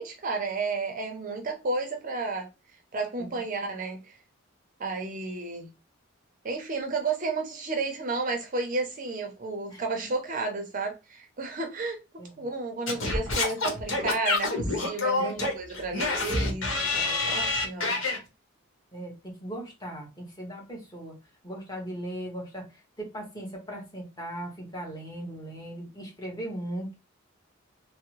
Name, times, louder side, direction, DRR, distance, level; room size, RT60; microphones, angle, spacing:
voice 1, 0.0-2.5 2.9-4.1 4.8-5.7 6.4-18.0, right 3 dB, 40° right, 0.5 m, -32 dB
Singing / Scratching (performance technique), 12.9-18.2, left 3 dB, 70° left, 1.1 m, -27 dB
voice 2, 15.2-15.6 17.9-18.0 18.9-21.2 21.4-27.0, right 1 dB, 20° left, 1.0 m, -38 dB
3.4 x 2.0 x 3.0 m
head